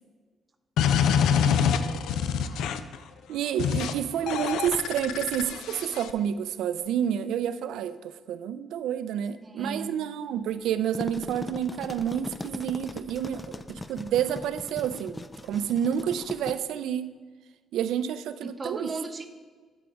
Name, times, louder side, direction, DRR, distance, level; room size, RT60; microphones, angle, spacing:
sound 1, 0.8-3.0 3.6-3.9 4.3-6.1, left 7 dB, 85° left, 0.4 m, -25 dB
voice 1, 1.4-1.8 9.4-10.0 18.4-19.3, right 3 dB, 30° right, 7 dB, 0.7 m, -36 dB
voice 2, 3.3-17.1 17.7-18.9, right 9 dB, 85° right, 13 dB, 0.4 m, -29 dB
sound 2, 10.7-16.5, left 2 dB, 20° left, 0.4 m, -39 dB
11.5 x 5.0 x 3.5 m, 1.4 s
cardioid pair, 90°, 0 cm